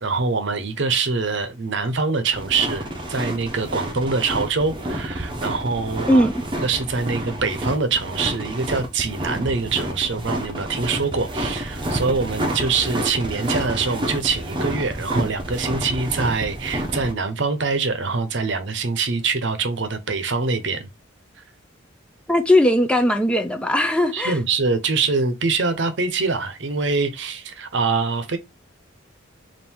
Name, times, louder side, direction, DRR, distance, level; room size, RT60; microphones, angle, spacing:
voice 1, 0.0-6.3 6.6-20.9 24.1-28.4, right 4 dB, 60° right, 0.7 m, -24 dB
sound 1, 2.3-17.1, right 1 dB, 25° right, 0.6 m, -29 dB
voice 2, 22.3-24.4, left 1 dB, 5° left, 0.3 m, -18 dB
3.6 x 2.6 x 4.3 m
head